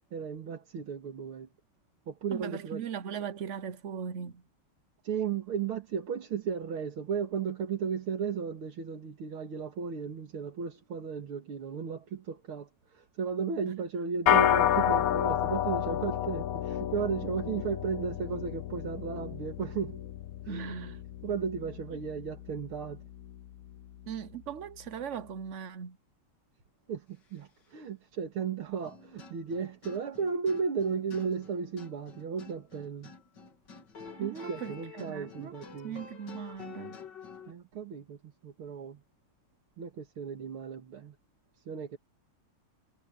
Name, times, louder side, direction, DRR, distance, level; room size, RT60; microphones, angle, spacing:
voice 1, 0.1-1.5 2.1-2.8 5.0-20.0 20.4-20.8 21.2-23.0 26.9-33.1 34.2-36.0 37.5-39.0 39.8-41.2 41.7-42.0, right 6 dB, 80° right, 2.7 m, -35 dB
voice 2, 2.3-4.4 13.6-13.7 20.5-21.0 24.1-26.0 34.2-35.6 35.8-37.0, right 7 dB, 60° right, 0.8 m, -39 dB
sound 1, 14.3-23.8, left 11 dB, 70° left, 0.8 m, -31 dB
sound 2, 28.8-37.5, left 5 dB, 55° left, 3.0 m, -49 dB
omnidirectional pair, 2.3 m